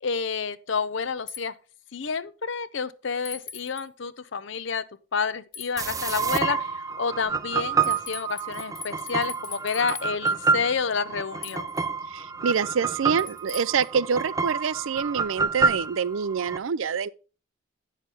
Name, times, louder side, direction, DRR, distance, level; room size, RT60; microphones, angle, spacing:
voice 1, 0.0-1.5 1.9-4.8 5.1-11.7, left 5 dB, 65° left, 0.6 m, -29 dB
sound 1, 1.3-1.4 3.2-3.8 5.5-6.2 7.8-10.3 11.4-11.8 13.2-13.9, left 6 dB, 45° left, 1.6 m, -40 dB
sound 2, 5.8-16.6, right 5 dB, 15° right, 0.4 m, -28 dB
voice 2, 12.1-17.1, right 6 dB, 75° right, 0.5 m, -26 dB
9.1 x 6.5 x 3.8 m
head